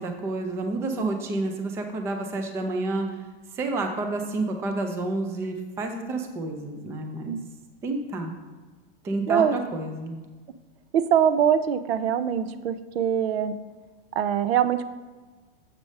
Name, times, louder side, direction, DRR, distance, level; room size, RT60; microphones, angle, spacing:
voice 1, 0.0-3.2 3.6-7.4 7.8-8.3 9.0-10.2, right 2 dB, 10° right, 5 dB, 0.3 m, -29 dB
voice 2, 10.9-13.5 14.2-14.9, right 9 dB, 85° right, 13 dB, 0.6 m, -23 dB
7.5 x 4.8 x 5.3 m, 1.3 s
supercardioid pair, 155°, 30 cm